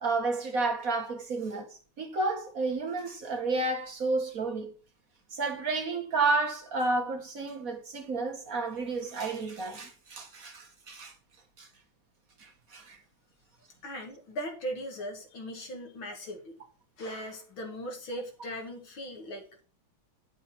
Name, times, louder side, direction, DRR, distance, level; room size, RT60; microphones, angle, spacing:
voice 1, 0.0-4.7 5.3-11.1 11.6-11.7 12.4-13.0, right 3 dB, 45° right, 1.6 m, -31 dB
voice 2, 13.8-16.6 17.0-19.4, equal, 75° left, 2.9 m, -39 dB
10.5 x 6.8 x 4.3 m
omnidirectional pair, 2.2 m